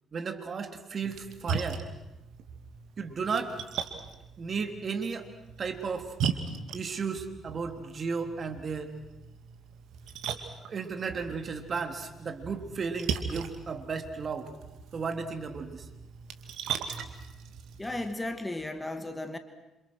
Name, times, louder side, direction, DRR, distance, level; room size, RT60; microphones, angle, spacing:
voice 1, 0.1-1.8 3.0-3.6 4.4-5.3 5.6-6.1 6.7-8.9 10.6-14.5 14.9-15.8, right 5 dB, 50° right, 6 dB, 3.3 m, -34 dB
Splash splatter, 1.0-18.1, right 7 dB, 70° right, 2.3 m, -39 dB
voice 2, 17.8-19.4, left 2 dB, 15° left, 8 dB, 2.5 m, -35 dB
28.0 x 27.5 x 6.5 m, 0.95 s
hypercardioid pair, 45°, 0 cm